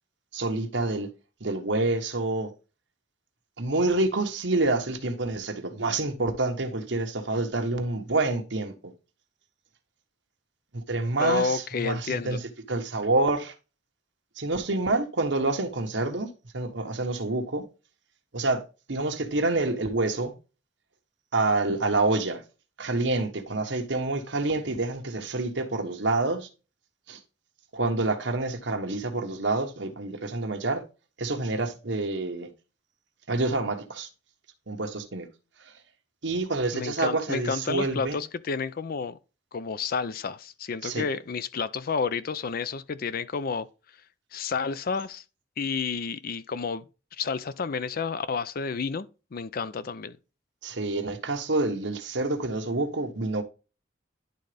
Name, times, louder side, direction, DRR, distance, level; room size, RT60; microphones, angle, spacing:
voice 1, 0.3-1.1 1.4-2.5 3.6-8.9 10.7-12.4 12.7-13.5 14.4-17.6 18.3-18.6 18.9-20.3 21.3-22.4 22.8-26.5 27.1-27.2 27.7-30.8 31.2-32.5 33.3-34.1 34.7-35.3 36.2-38.2 40.8-41.1 50.6-53.4, right 2 dB, 75° right, 1.2 m, -27 dB
voice 2, 11.2-12.4 36.7-39.2 39.5-43.7 44.3-45.2 45.6-46.8 47.2-50.2, left 5 dB, 50° left, 0.5 m, -30 dB
10.5 x 3.8 x 3.4 m
head